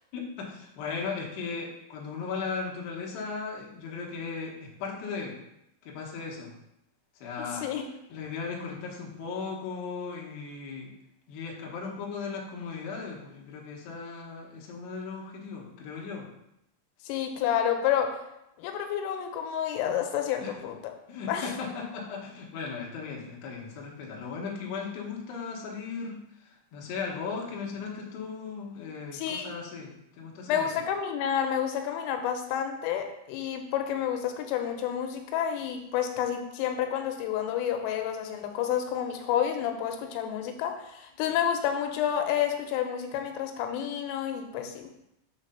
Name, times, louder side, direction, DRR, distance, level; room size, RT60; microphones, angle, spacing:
voice 1, 0.1-5.4 5.8-6.5 7.2-7.7 8.1-10.9 11.3-16.3 20.4-20.5 21.1-26.2 26.5-30.7, left 5 dB, 70° left, -1 dB, 2.8 m, -37 dB
voice 2, 7.4-7.8 17.1-18.2 18.6-20.9 21.3-21.5 29.1-29.5 30.5-44.9, left 9 dB, 90° left, 5 dB, 3.3 m, -29 dB
7.3 x 3.2 x 5.5 m, 0.83 s
omnidirectional pair, 5.8 m